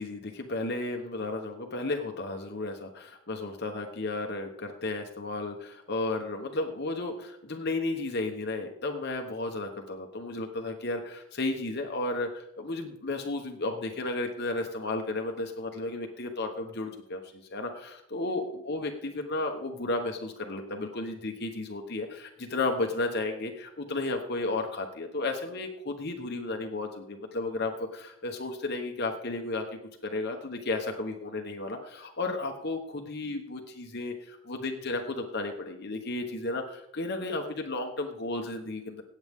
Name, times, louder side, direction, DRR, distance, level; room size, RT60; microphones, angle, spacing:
voice 1, 0.0-29.6 30.0-39.0, left 2 dB, 45° left, 3 dB, 1.1 m, -33 dB
17.5 x 8.0 x 3.6 m, 0.77 s
head